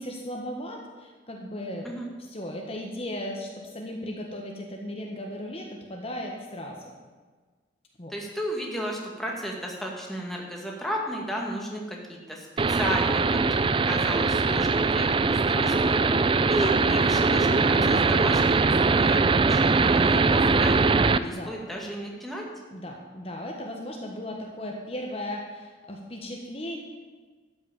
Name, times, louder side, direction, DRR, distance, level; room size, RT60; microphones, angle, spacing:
voice 1, 0.0-1.9 2.2-6.9 8.0-8.1 16.0-16.3 21.1-21.5 22.7-26.8, left 1 dB, 30° left, 0 dB, 1.4 m, -36 dB
voice 2, 8.1-16.0 16.5-22.5, equal, ahead, -2 dB, 2.0 m, -34 dB
sound 1, 12.6-21.2, right 4 dB, 30° right, 0.4 m, -21 dB
13.0 x 6.3 x 8.9 m, 1.4 s
head